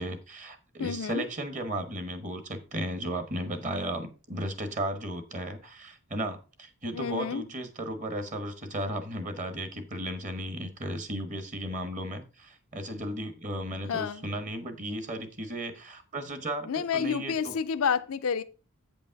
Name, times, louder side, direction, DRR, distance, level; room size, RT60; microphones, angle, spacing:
voice 1, 0.0-17.5, right 1 dB, 35° right, 1.2 m, -35 dB
voice 2, 0.8-1.2 6.9-7.5 13.9-14.2 16.7-18.4, left 6 dB, 75° left, 0.5 m, -29 dB
8.3 x 5.3 x 4.6 m
head